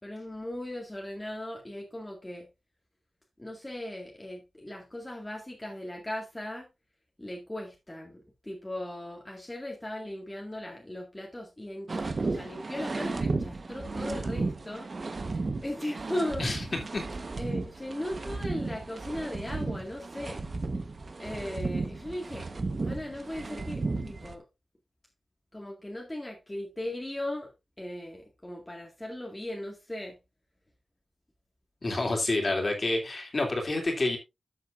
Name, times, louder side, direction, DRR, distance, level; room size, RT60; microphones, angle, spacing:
voice 1, 0.0-2.5 3.4-6.7 7.2-14.9 15.6-16.8 17.4-20.5 21.2-22.5 22.8-24.4 25.5-27.5 27.8-30.2 32.4-32.6, left 1 dB, 10° left, 1.9 m, -38 dB
sound 1, 11.9-24.4, right 3 dB, 35° right, 1.2 m, -34 dB
voice 2, 31.8-34.2, left 2 dB, 35° left, 2.9 m, -28 dB
12.5 x 7.6 x 2.6 m
wide cardioid pair, 170°, 0 cm